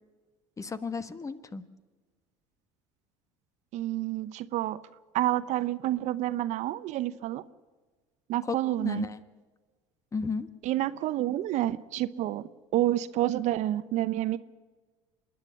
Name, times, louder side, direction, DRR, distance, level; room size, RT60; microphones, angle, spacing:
voice 1, 0.6-1.6 8.4-9.2 10.1-10.5, left 4 dB, 20° left, 13 dB, 1.3 m, -34 dB
voice 2, 3.7-4.8 5.1-7.4 8.3-9.1 10.6-14.4, right 14 dB, 60° right, 15 dB, 0.8 m, -29 dB
26.0 x 10.5 x 9.6 m, 1.4 s
hypercardioid pair, 85°, 14 cm